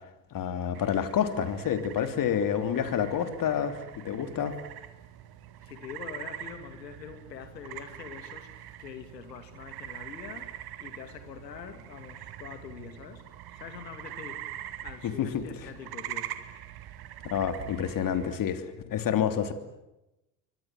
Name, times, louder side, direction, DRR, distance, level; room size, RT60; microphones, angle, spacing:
voice 1, 0.3-4.5 15.0-15.4 17.2-19.5, left 8 dB, 40° left, 3.2 m, -28 dB
sound 1, 0.7-18.4, right 12 dB, 50° right, 2.3 m, -43 dB
voice 2, 5.6-14.5 14.8-16.3, left 7 dB, 80° left, 2.8 m, -44 dB
29.0 x 24.0 x 7.7 m
hypercardioid pair, 70°, 49 cm